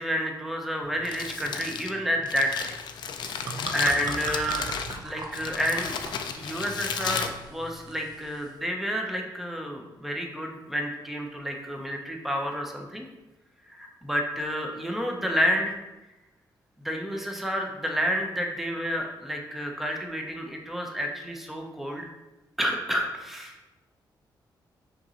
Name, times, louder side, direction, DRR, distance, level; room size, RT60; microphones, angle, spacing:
voice 1, 0.0-2.8 3.3-4.7 5.0-6.0 6.4-13.1 13.7-15.8 16.8-22.1 22.6-23.6, equal, 5° right, 1 dB, 0.5 m, -30 dB
Crumpling crinkling, 0.8-8.1, left 6 dB, 70° left, 0.3 m, -34 dB
sound 1, 3.2-8.6, right 3 dB, 55° right, 0.5 m, -40 dB
5.1 x 3.0 x 2.8 m, 1.0 s
wide cardioid pair, 130°, 8 cm